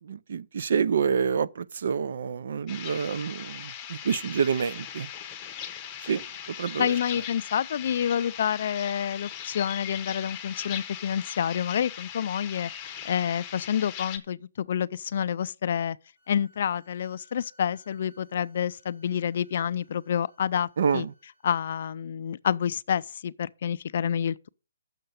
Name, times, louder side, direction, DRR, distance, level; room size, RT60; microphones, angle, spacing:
voice 1, 0.0-5.1 6.0-6.9 20.8-21.1, right 6 dB, 60° right, 0.5 m, -28 dB
sound 1, 2.7-14.2, left 9 dB, 15° left, 0.9 m, -39 dB
voice 2, 6.8-16.0 16.3-21.1 21.4-24.5, left 8 dB, 50° left, 0.4 m, -28 dB
sound 2, 16.1-21.8, equal, 40° right, 5.1 m, -62 dB
6.8 x 6.6 x 7.7 m
hypercardioid pair, 170°, 0 cm